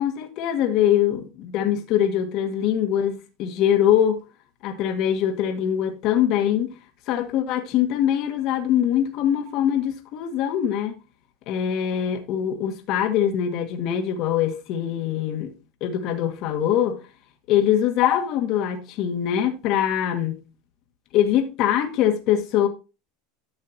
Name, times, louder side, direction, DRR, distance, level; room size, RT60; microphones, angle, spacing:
voice 1, 0.0-4.2 4.6-6.7 7.1-11.0 11.5-15.5 15.8-17.0 17.5-20.4 21.1-22.7, left 10 dB, 55° left, 2.0 m, -23 dB
12.5 x 6.4 x 2.9 m
supercardioid pair, 125°, 0 cm